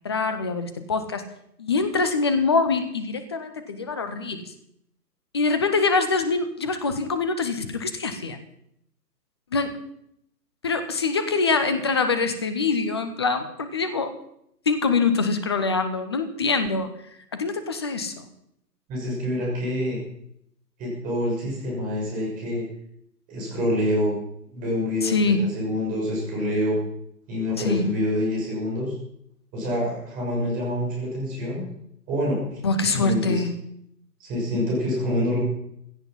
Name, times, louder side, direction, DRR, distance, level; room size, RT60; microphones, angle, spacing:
voice 1, 0.0-1.2 1.6-4.4 5.3-8.4 9.5-9.8 10.6-14.1 14.7-16.9 17.3-18.3 25.0-25.4 27.6-27.9 32.6-33.5, left 4 dB, 15° left, 9 dB, 0.7 m, -24 dB
voice 2, 18.9-20.0 20.8-22.6 23.3-24.2 24.5-26.8 27.3-28.9 29.5-31.6 32.1-32.5 32.8-33.3 34.2-35.4, left 1 dB, 15° right, -3 dB, 6.5 m, -26 dB
16.0 x 14.0 x 5.6 m, 0.73 s
figure-of-eight pair, 135°, 49 cm